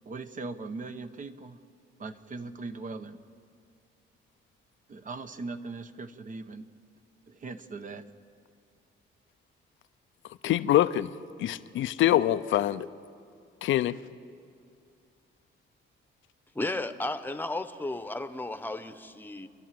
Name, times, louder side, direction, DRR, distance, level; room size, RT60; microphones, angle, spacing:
voice 1, 0.1-1.6 2.0-3.2 4.9-6.7 7.3-8.0, right 3 dB, 40° right, 1.1 m, -39 dB
voice 2, 10.4-11.1 11.4-12.9 13.6-13.9, left 13 dB, 75° left, 0.7 m, -24 dB
voice 3, 16.5-19.5, left 2 dB, 10° left, 1.1 m, -34 dB
29.5 x 11.5 x 7.7 m
cardioid pair, 90°, 20 cm